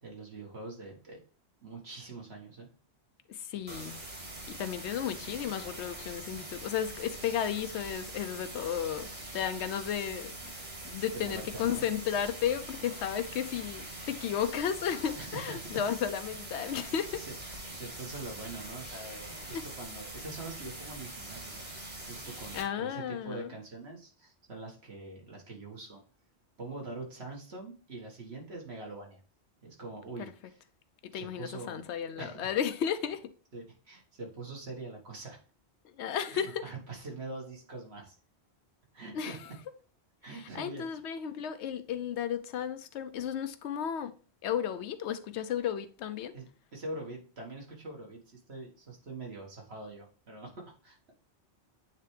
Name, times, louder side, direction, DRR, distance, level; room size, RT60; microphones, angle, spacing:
voice 1, 0.0-1.2 1.6-2.7 11.1-11.9 15.2-15.7 16.5-16.8 17.1-26.0 26.6-29.2 29.6-30.6 31.1-31.8 32.2-32.5 33.5-35.4 36.3-38.2 38.9-39.4 40.2-40.9 46.3-51.1, right 2 dB, 70° right, 1.8 m, -44 dB
voice 2, 3.3-4.0 4.5-17.2 19.5-19.6 22.5-23.5 30.2-30.3 31.0-33.3 35.8-36.6 39.1-39.4 40.5-44.1 44.4-46.3, left 9 dB, 80° left, 0.9 m, -34 dB
sound 1, 3.7-22.6, right 2 dB, 40° right, 1.7 m, -43 dB
8.7 x 3.3 x 3.2 m
omnidirectional pair, 1.1 m